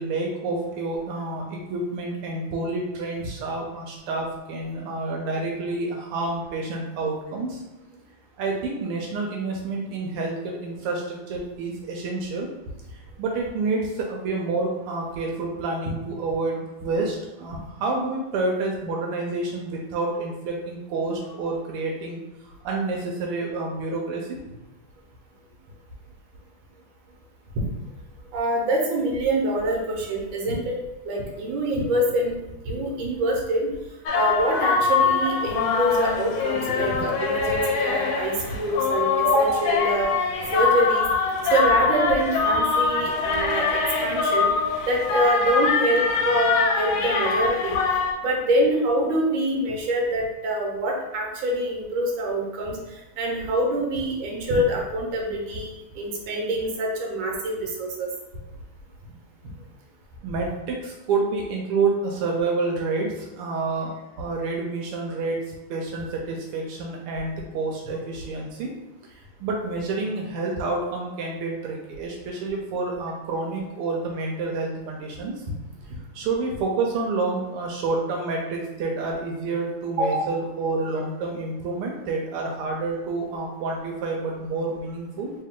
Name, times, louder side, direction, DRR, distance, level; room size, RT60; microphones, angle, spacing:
voice 1, 0.0-7.6 7.9-8.0 8.4-12.5 12.9-24.4 32.7-32.8 36.7-36.8 60.2-68.7 69.0-75.5 76.1-85.3, right 3 dB, 85° right, 0 dB, 1.5 m, -29 dB
voice 2, 28.3-30.8 31.0-32.4 32.6-33.7 34.1-40.1 40.5-41.1 41.5-43.7 44.0-44.5 44.9-47.8 48.2-58.1 80.0-80.3, right 1 dB, 70° right, -1 dB, 1.5 m, -25 dB
sound 1, 34.1-48.1, left 5 dB, 75° left, 1.3 m, -23 dB
3.2 x 3.2 x 3.6 m, 1.0 s
omnidirectional pair, 2.4 m